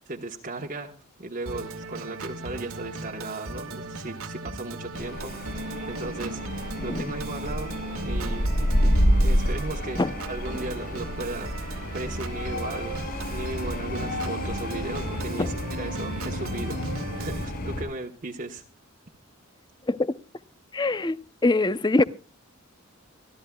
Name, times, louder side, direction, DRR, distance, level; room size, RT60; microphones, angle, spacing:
voice 1, 0.1-0.9 1.2-7.7 8.0-8.5 9.2-13.0 13.3-18.6, right 2 dB, 40° right, 1.2 m, -36 dB
Organ, 1.5-17.5, right 2 dB, 85° right, 2.0 m, -37 dB
sound 1, 4.9-17.8, equal, 45° left, 7.0 m, -29 dB
voice 2, 6.8-7.1 8.8-9.0 10.0-10.1 15.4-15.5 19.9-20.2 20.7-21.2 21.4-22.0, left 2 dB, 20° left, 0.6 m, -23 dB
26.5 x 13.0 x 2.3 m
head